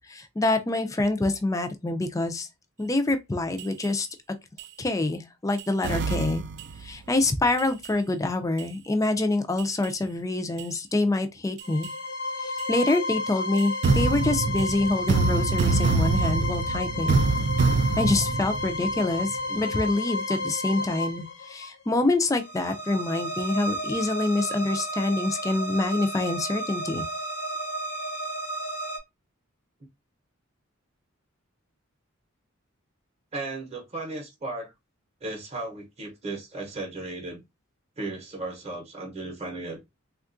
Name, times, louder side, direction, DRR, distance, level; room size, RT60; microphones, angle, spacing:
voice 1, 0.1-2.5 2.8-4.1 4.8-6.4 6.8-11.9 12.4-17.2 18.0-27.0, left 2 dB, 15° left, 0.4 m, -26 dB
sound 1, 3.6-3.9 4.6-4.7 5.6-6.9 7.6-7.9 8.6-8.7 9.6-9.9 10.6-10.7 11.6-11.9 12.6-12.7 13.6-19.4, right 4 dB, 55° right, 0.3 m, -25 dB
sound 2, 11.6-29.0, left 1 dB, 60° left, 0.7 m, -32 dB
voice 2, 33.3-34.7 35.2-37.4 38.0-39.8, right 2 dB, 30° right, 0.8 m, -35 dB
3.5 x 2.3 x 2.5 m
head